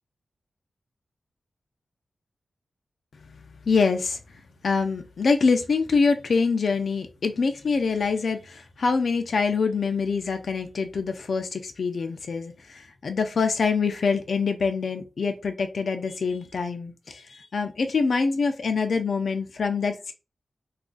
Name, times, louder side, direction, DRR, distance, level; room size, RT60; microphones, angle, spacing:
voice 1, 3.7-4.2 4.6-20.1, left 4 dB, 65° left, 6 dB, 0.3 m, -25 dB
2.4 x 2.3 x 3.7 m, 0.31 s
wide cardioid pair, 120°, 0 cm